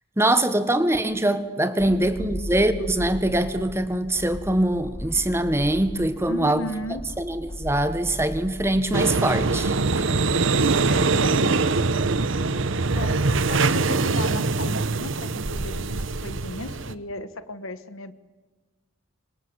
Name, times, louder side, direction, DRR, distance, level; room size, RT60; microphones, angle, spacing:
voice 1, 0.2-6.7 7.2-9.7, right 1 dB, 10° right, 11 dB, 1.4 m, -23 dB
sound 1, 1.8-9.7, equal, 20° left, 1.6 m, -37 dB
voice 2, 6.3-7.0 10.6-11.6 12.9-18.1, left 2 dB, 85° left, 12 dB, 1.5 m, -35 dB
sound 2, 8.9-16.9, right 3 dB, 70° right, 1.0 m, -23 dB
26.0 x 25.5 x 8.1 m, 1.3 s
head